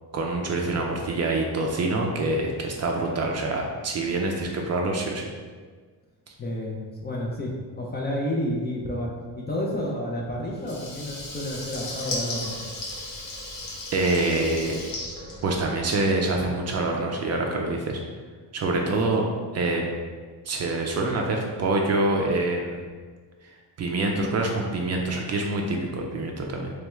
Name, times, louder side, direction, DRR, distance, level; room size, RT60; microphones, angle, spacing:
voice 1, 0.1-5.3 13.9-14.8 15.4-18.0 18.5-19.2 19.5-19.9 20.5-22.8 23.8-26.7, right 2 dB, 40° right, 1 dB, 0.4 m, -26 dB
voice 2, 6.4-12.6 18.8-19.0, left 1 dB, 25° left, -2 dB, 0.4 m, -30 dB
Water tap faucet / Liquid, 10.6-16.1, left 2 dB, 85° left, 1.1 m, -36 dB
3.4 x 3.2 x 3.0 m, 1.5 s
cardioid pair, 150°, 43 cm